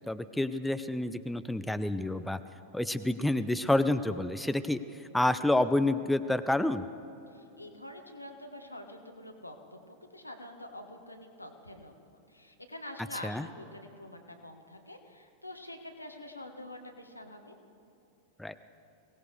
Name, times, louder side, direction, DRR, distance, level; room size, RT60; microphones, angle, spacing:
voice 1, 0.1-2.4 2.7-6.8 13.2-13.5 18.4-18.5, left 1 dB, 5° left, 11 dB, 0.5 m, -29 dB
voice 2, 7.3-11.9 12.3-17.6, left 1 dB, 85° left, 4 dB, 1.4 m, -46 dB
22.5 x 17.5 x 3.3 m, 2.8 s
figure-of-eight pair, 90°, 0 cm